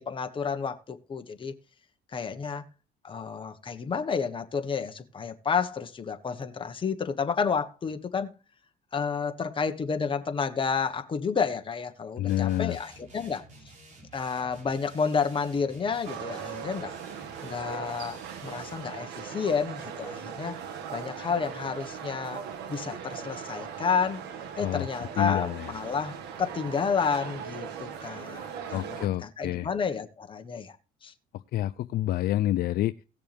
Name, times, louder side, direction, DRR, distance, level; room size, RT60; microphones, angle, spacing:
voice 1, 0.0-1.5 2.1-2.6 3.0-8.3 8.9-13.4 14.1-16.9 17.4-20.6 20.9-22.4 22.7-24.2 24.5-30.8 31.0-31.1, left 5 dB, 30° left, 1.4 m, -30 dB
voice 2, 12.2-12.8 24.6-25.7 28.7-29.7 31.5-32.9, left 14 dB, 65° left, 0.5 m, -28 dB
sound 1, 12.3-18.9, right 2 dB, 45° right, 4.2 m, -52 dB
sound 2, 16.0-29.1, right 7 dB, 80° right, 1.7 m, -39 dB
17.5 x 6.8 x 3.5 m
cardioid pair, 110°, 17 cm